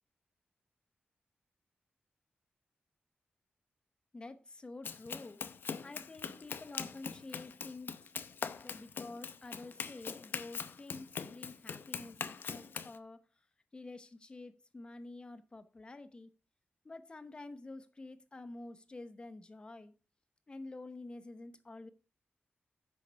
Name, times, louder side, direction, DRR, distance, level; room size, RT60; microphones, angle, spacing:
voice 1, 4.1-5.4 5.8-8.1 8.6-13.2 13.7-16.3 16.8-19.9 20.5-21.9, left 2 dB, 25° left, 0.9 m, -49 dB
Run, 4.8-13.0, left 6 dB, 65° left, 0.7 m, -42 dB
9.6 x 6.5 x 4.7 m
wide cardioid pair, 170°, 4 cm